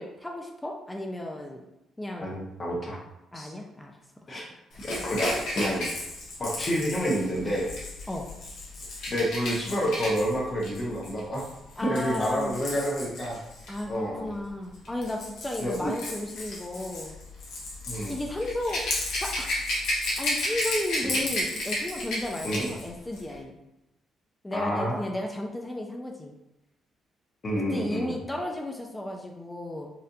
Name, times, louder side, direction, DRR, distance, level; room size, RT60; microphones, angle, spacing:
voice 1, 0.0-1.6 2.0-2.4 3.3-3.9 8.1-8.3 11.8-12.6 13.7-17.1 18.1-18.8 19.2-19.5 20.2-23.6 24.4-26.4 27.7-29.9, left 1 dB, 15° left, 1 dB, 0.5 m, -34 dB
voice 2, 2.2-3.0 3.3-3.5 4.3-4.4 4.8-5.9 6.4-7.7 9.1-11.4 11.8-13.4 13.9-14.3 15.6-15.9 17.9-18.1 21.0-21.1 22.4-22.7 24.5-24.9 27.4-28.2, equal, 35° left, -4 dB, 0.9 m, -29 dB
Rattle / Rattle (instrument), 4.8-13.8 14.7-22.8 23.1-23.3, left 1 dB, 75° left, 1.1 m, -33 dB
4.1 x 2.5 x 2.6 m, 0.92 s
cardioid pair, 90°, 0 cm